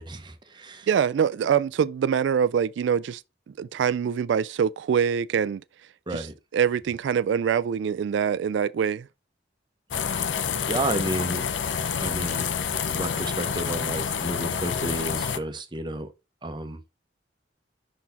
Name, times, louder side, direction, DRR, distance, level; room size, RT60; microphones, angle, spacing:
voice 1, 0.0-0.9 6.1-6.3 10.7-11.5 12.0-12.5 12.9-16.1 16.4-16.8, right 1 dB, 25° right, 0.8 m, -31 dB
voice 2, 0.9-3.2 3.5-5.6 6.1-6.3 6.5-9.1, right 7 dB, 75° right, 0.3 m, -24 dB
sound 1, 9.9-15.4, left 7 dB, 90° left, 0.5 m, -28 dB
5.9 x 4.1 x 4.0 m
head